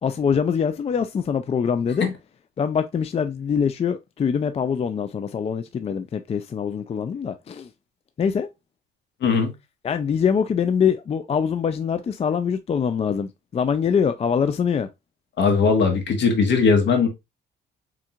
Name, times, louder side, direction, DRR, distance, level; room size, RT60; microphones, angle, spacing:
voice 1, 0.0-2.1 2.6-7.7 8.2-8.5 9.8-14.9, left 7 dB, 30° left, 0.4 m, -24 dB
voice 2, 9.2-9.5 15.4-17.1, left 5 dB, 65° left, 1.5 m, -19 dB
4.4 x 3.7 x 2.4 m
cardioid pair, 90°, 20 cm